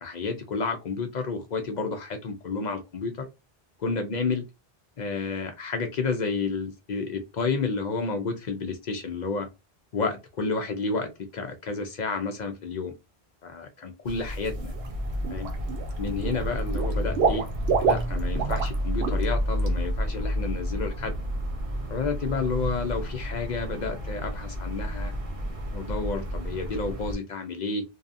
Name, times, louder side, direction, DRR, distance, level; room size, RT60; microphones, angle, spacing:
voice 1, 0.0-3.3 3.8-4.4 5.0-9.5 9.9-12.9 13.4-14.7 15.3-15.5 16.0-17.4 17.9-21.1 21.9-25.1 25.7-27.8, left 4 dB, 55° left, 0.6 m, -30 dB
sound 1, 14.1-27.2, equal, 40° right, 0.6 m, -31 dB
Water / Liquid, 14.6-14.9 15.2-15.9 16.2-18.7 19.0-19.2 19.6-19.7, right 5 dB, 80° right, 0.9 m, -27 dB
2.6 x 2.3 x 2.5 m
omnidirectional pair, 1.1 m